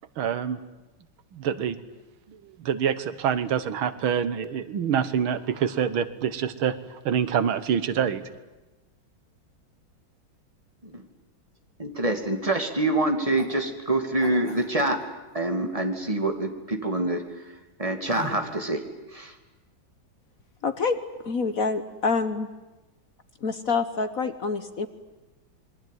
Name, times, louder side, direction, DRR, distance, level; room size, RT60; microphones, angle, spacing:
voice 1, 0.2-0.6 1.3-1.8 2.3-8.2, right 8 dB, 90° right, 13 dB, 2.1 m, -26 dB
voice 2, 11.8-15.0 15.3-17.2 17.8-18.8 19.1-19.3, right 2 dB, 15° right, 5 dB, 2.5 m, -26 dB
sound 1, 13.4-13.5 14.2-15.0 18.1-18.5, left 1 dB, 70° left, 8.4 m, -39 dB
voice 3, 20.6-21.0 21.2-22.5 23.4-24.9, left 4 dB, 50° left, 10 dB, 1.4 m, -26 dB
27.0 x 22.5 x 9.4 m, 1.1 s
omnidirectional pair, 2.2 m